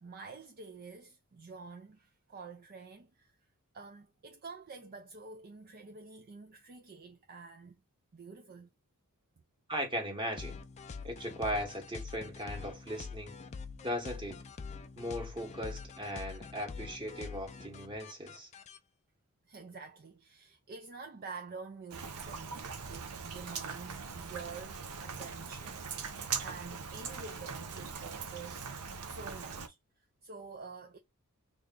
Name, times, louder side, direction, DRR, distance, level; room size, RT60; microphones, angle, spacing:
voice 1, 0.0-3.4 3.7-7.8 8.1-8.7 19.5-28.7 29.1-29.8 30.2-31.0, right 4 dB, 40° right, 0.4 m, -48 dB
voice 2, 9.7-10.6 11.0-13.4 13.8-14.4 15.0-18.5, equal, 20° right, 1.2 m, -38 dB
sound 1, 10.4-18.8, left 5 dB, 30° left, 0.4 m, -45 dB
Rain, 21.9-29.7, right 6 dB, 90° right, 0.7 m, -41 dB
3.3 x 2.5 x 3.7 m
head